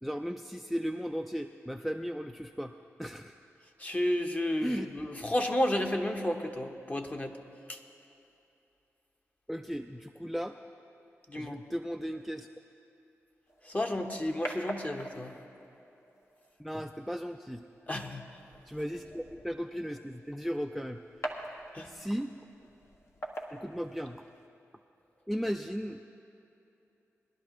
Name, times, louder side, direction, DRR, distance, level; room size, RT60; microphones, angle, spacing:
voice 1, 0.0-2.7 3.0-3.3 4.6-5.1 9.5-10.6 11.4-12.5 16.6-17.6 18.7-21.0 21.9-22.3 23.5-24.2 25.3-26.1, equal, ahead, 6 dB, 0.4 m, -36 dB
voice 2, 3.8-7.3 7.7-7.8 11.3-11.6 13.7-15.3 17.9-18.2 21.7-21.9, left 1 dB, 25° left, 3 dB, 1.2 m, -31 dB
sound 1, 13.5-24.5, equal, 55° left, 1.5 m, -45 dB
21.5 x 11.5 x 3.1 m, 2.7 s
cardioid pair, 45°, 6 cm